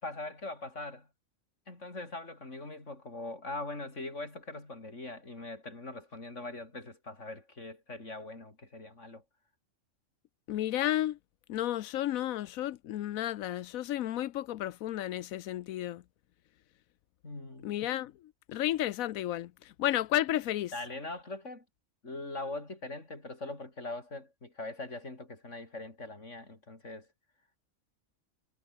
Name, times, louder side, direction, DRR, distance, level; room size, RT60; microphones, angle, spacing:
voice 1, 0.0-1.1 1.7-9.2 17.2-17.7 20.7-21.6 22.0-27.1, left 2 dB, 60° left, 5.2 m, -41 dB
voice 2, 10.5-11.2 11.5-16.0 17.6-18.1 18.5-20.7, left 13 dB, 85° left, 1.1 m, -32 dB
omnidirectional pair, 1.4 m